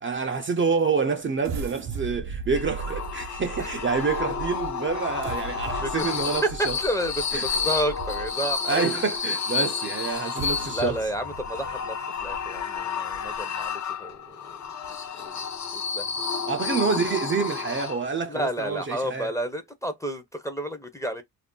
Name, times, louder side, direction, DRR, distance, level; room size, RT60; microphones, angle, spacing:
voice 1, 0.0-6.8 7.3-7.4 8.7-11.0 16.5-19.3, right 5 dB, 35° right, 0.5 m, -27 dB
sound 1, 1.4-8.5 9.1-9.2 10.1-13.6 14.1-14.2 14.6-14.9, right 5 dB, 80° right, 0.7 m, -38 dB
sound 2, 2.6-18.3, left 6 dB, 50° left, 0.6 m, -31 dB
sound 3, 3.5-5.2 7.5-9.2 11.5-11.8, left 4 dB, 75° left, 1.1 m, -45 dB
voice 2, 5.8-6.1 6.4-8.9 10.7-14.6 15.2-15.4 15.7-16.1 18.3-21.2, right 1 dB, 10° left, 0.6 m, -31 dB
2.5 x 2.0 x 3.6 m
cardioid pair, 80°, 36 cm